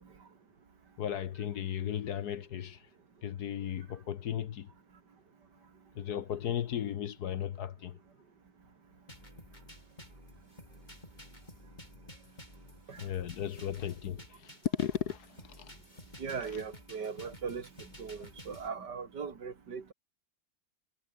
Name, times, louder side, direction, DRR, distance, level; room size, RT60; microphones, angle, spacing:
voice 1, 1.0-2.9 3.2-4.7 5.9-8.0 12.9-15.7 16.5-16.6, left 10 dB, 60° left, 1.4 m, -36 dB
sound 1, 9.1-18.7, left 1 dB, 20° left, 8.1 m, -52 dB
voice 2, 16.2-17.7 18.0-19.9, right 6 dB, 65° right, 3.0 m, -39 dB
omnidirectional pair, 2.0 m